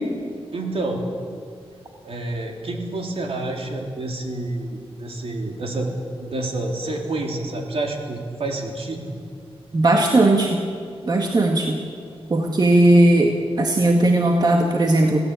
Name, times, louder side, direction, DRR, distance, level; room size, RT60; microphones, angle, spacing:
voice 1, 0.5-1.1 2.0-5.9 6.2-9.0, right 2 dB, 70° right, 1 dB, 3.5 m, -28 dB
voice 2, 9.7-10.6 11.1-11.8 12.3-13.3 13.6-15.2, right 2 dB, 40° right, 1 dB, 1.9 m, -17 dB
27.0 x 16.5 x 8.4 m, 2.2 s
wide cardioid pair, 160°, 10 cm